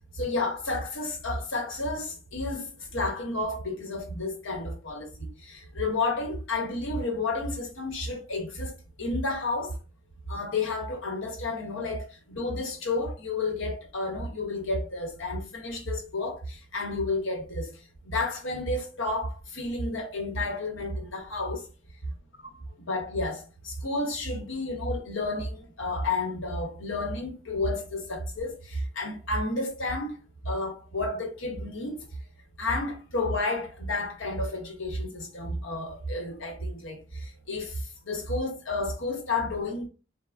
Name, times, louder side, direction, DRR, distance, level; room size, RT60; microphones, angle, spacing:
voice 1, 0.1-8.7 9.0-9.8 10.3-17.8 18.0-21.7 22.8-30.2 30.4-32.1 32.6-39.9, left 2 dB, 80° left, 1.0 m, -31 dB
4.1 x 2.1 x 2.4 m
head